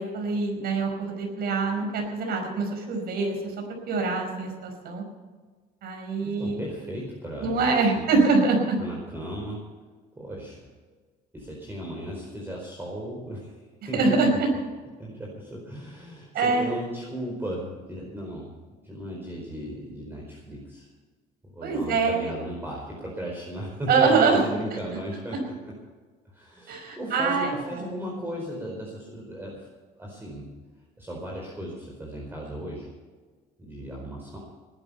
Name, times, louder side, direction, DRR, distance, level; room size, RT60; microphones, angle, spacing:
voice 1, 0.0-3.5 3.9-5.0 5.8-6.6 7.4-8.8 13.9-14.5 16.3-16.8 21.6-22.3 23.9-24.4 26.7-27.6, right 4 dB, 65° right, 3 dB, 5.4 m, -24 dB
voice 2, 6.2-8.1 8.8-9.6 10.2-10.7 11.3-13.6 13.9-14.4 15.0-18.5 18.8-20.9 21.5-25.7 26.3-29.7 30.0-30.5 31.0-32.9 33.6-34.4, equal, 15° right, -2 dB, 4.5 m, -36 dB
19.0 x 12.0 x 5.6 m, 1.4 s
cardioid pair, 110°, 17 cm